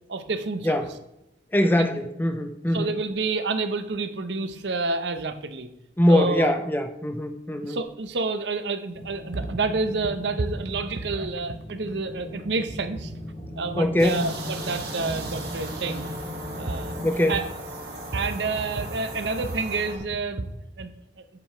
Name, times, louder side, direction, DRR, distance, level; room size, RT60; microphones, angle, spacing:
voice 1, 0.1-0.9 2.7-5.7 6.1-6.6 7.6-13.2 13.6-16.1 16.6-17.0 17.3-17.5 18.1-20.5 20.8-20.9, right 3 dB, 80° right, 10 dB, 0.7 m, -29 dB
voice 2, 1.5-2.9 6.0-7.8 13.8-14.3 17.0-17.3, left 1 dB, 10° left, 8 dB, 0.5 m, -22 dB
sound 1, 8.9-17.1, left 1 dB, 40° left, 0.8 m, -38 dB
sound 2, 14.0-20.0, right 1 dB, 65° right, 1.9 m, -37 dB
8.4 x 4.9 x 4.4 m, 0.86 s
head